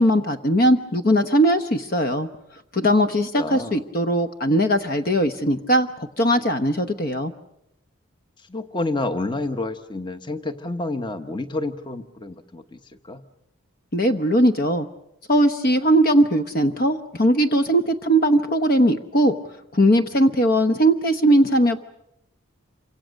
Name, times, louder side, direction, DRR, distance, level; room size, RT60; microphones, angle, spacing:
voice 1, 0.0-2.3 2.7-7.3 13.9-14.9 15.3-19.3 19.7-21.8, equal, 45° left, 9 dB, 1.0 m, -19 dB
voice 2, 3.4-3.8 8.4-13.2, left 2 dB, 20° left, 10 dB, 1.1 m, -29 dB
27.5 x 25.0 x 6.5 m, 0.79 s
head